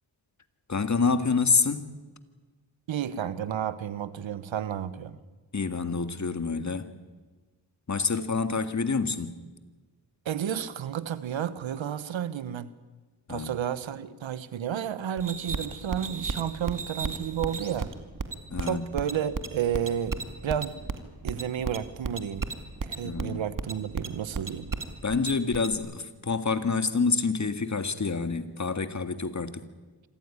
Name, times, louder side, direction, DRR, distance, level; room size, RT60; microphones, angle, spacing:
voice 1, 0.7-2.1 5.5-6.9 7.9-9.4 13.3-13.6 18.5-18.8 23.0-23.4 25.0-29.6, left 4 dB, 40° left, 1.9 m, -27 dB
voice 2, 2.9-5.2 10.2-12.7 13.3-17.9 18.6-20.2 20.4-20.8 21.2-22.5 22.8-24.7, right 9 dB, 85° right, 1.3 m, -31 dB
sound 1, 15.2-25.8, right 4 dB, 45° right, 2.4 m, -34 dB
26.5 x 15.0 x 9.8 m
cardioid pair, 60°, 45 cm